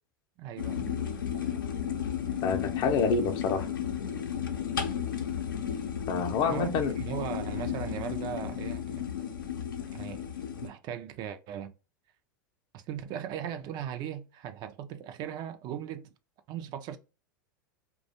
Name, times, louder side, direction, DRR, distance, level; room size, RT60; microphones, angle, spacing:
voice 1, 0.4-1.0 6.5-9.0 9.9-10.2 10.6-11.7 12.7-16.1 16.5-17.0, right 9 dB, 40° right, 0.4 m, -38 dB
sound 1, 0.6-10.7, left 8 dB, 90° left, 0.6 m, -33 dB
voice 2, 2.4-3.7 6.1-6.9, left 5 dB, 45° left, 0.5 m, -27 dB
2.4 x 2.2 x 2.7 m
hypercardioid pair, 100°, 11 cm